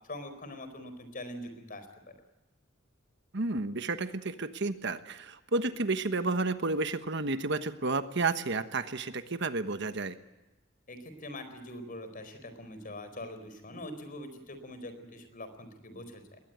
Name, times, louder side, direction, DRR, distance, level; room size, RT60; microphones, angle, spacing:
voice 1, 0.1-2.1 10.9-16.4, left 1 dB, 45° left, 9 dB, 4.4 m, -43 dB
voice 2, 3.3-10.1, right 3 dB, 60° right, 10 dB, 1.3 m, -31 dB
21.5 x 18.5 x 9.3 m, 1.1 s
head